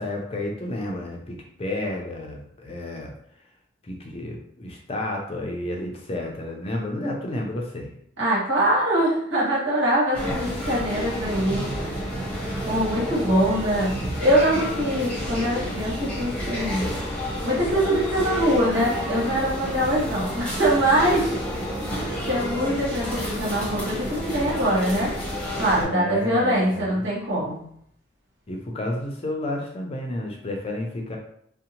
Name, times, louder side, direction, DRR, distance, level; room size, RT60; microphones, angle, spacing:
voice 1, 0.0-3.1 3.8-7.9 25.7-27.0 28.5-31.2, left 1 dB, 30° left, 0 dB, 0.5 m, -31 dB
voice 2, 8.2-11.6 12.7-13.9 14.2-16.8 17.4-21.6 22.2-25.1 25.6-27.6, equal, 80° right, -7 dB, 1.3 m, -23 dB
sound 1, 10.1-25.8, equal, 5° left, 0.8 m, -30 dB
2.6 x 2.1 x 2.8 m, 0.68 s
head